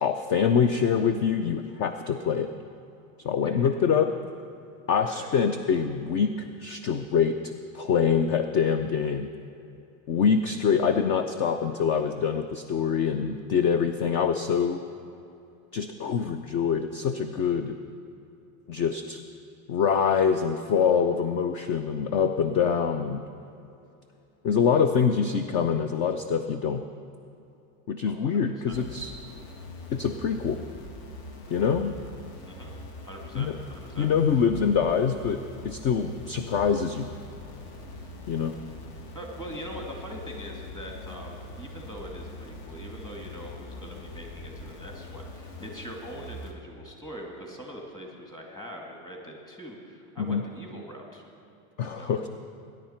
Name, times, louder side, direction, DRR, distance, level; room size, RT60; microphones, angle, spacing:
voice 1, 0.0-2.5 3.2-4.1 4.9-9.3 10.1-14.8 15.7-17.8 18.7-19.2 19.7-23.2 24.4-26.8 27.9-29.1 29.9-30.6 31.5-31.9 33.4-33.6 34.0-35.4 35.6-37.1 38.3-38.5 50.2-50.4 51.8-52.3, left 6 dB, 30° left, 9 dB, 0.4 m, -25 dB
voice 2, 28.1-28.4 28.7-28.8 32.5-32.8 33.0-34.1 39.1-51.3 51.9-52.2, equal, 10° left, -1 dB, 2.1 m, -42 dB
sound 1, 28.7-46.5, left 2 dB, 50° left, 1.7 m, -43 dB
19.5 x 10.5 x 4.4 m, 2.7 s
supercardioid pair, 140°, 41 cm